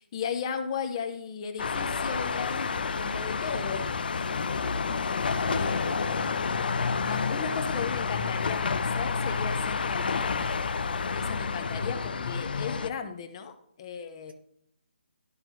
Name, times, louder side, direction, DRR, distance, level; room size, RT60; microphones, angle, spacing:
voice 1, 0.0-3.8 4.1-5.1 5.5-6.3 7.0-10.4 11.1-14.3, left 6 dB, 30° left, 8 dB, 0.9 m, -36 dB
sound 1, 1.6-12.9, left 5 dB, 60° left, 0.6 m, -29 dB
voice 2, 5.3-6.6 11.6-11.9, right 5 dB, 65° right, 6 dB, 1.3 m, -44 dB
12.5 x 5.3 x 3.1 m, 0.69 s
hypercardioid pair, 160°, 6 cm